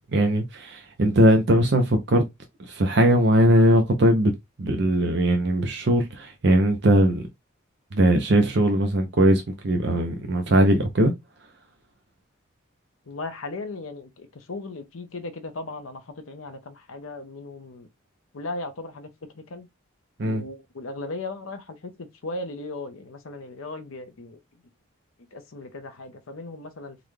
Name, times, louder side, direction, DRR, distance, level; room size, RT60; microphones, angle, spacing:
voice 1, 0.1-2.2 2.7-4.3 4.6-7.3 7.9-11.1 20.2-20.4, right 1 dB, 55° right, 0.6 m, -20 dB
voice 2, 13.1-17.9 18.3-19.1 19.3-19.7 20.2-24.4 25.3-27.0, left 2 dB, 90° left, 0.7 m, -37 dB
3.8 x 2.2 x 3.2 m
head